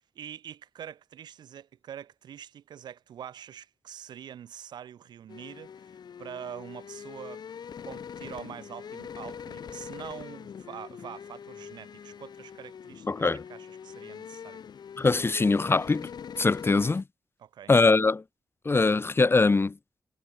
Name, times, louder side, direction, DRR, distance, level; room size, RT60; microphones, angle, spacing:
voice 1, 0.2-7.4 7.8-14.6 17.4-17.7, right 9 dB, 90° right, 7.2 m, -44 dB
sound 1, 5.3-17.0, left 7 dB, 75° left, 2.7 m, -43 dB
voice 2, 13.1-13.4 15.0-16.1 16.4-17.0 17.7-18.2 18.6-19.8, left 3 dB, 35° left, 0.6 m, -22 dB
cardioid pair, 50°, 7 cm